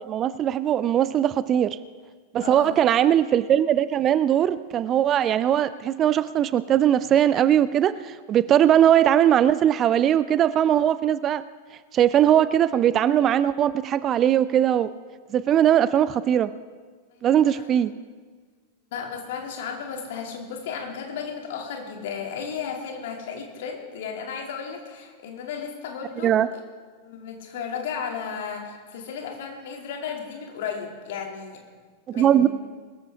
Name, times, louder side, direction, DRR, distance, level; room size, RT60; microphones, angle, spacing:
voice 1, 0.0-1.8 2.3-11.4 11.9-14.9 15.3-16.5 17.2-17.9 26.2-26.5 32.1-32.5, right 10 dB, 30° right, 16 dB, 0.4 m, -20 dB
voice 2, 2.4-2.8 17.1-17.7 18.9-26.6 27.0-31.6 32.1-32.5, left 6 dB, 55° left, 1 dB, 2.8 m, -34 dB
21.5 x 14.0 x 3.7 m, 1.5 s
figure-of-eight pair, 90°, 0 cm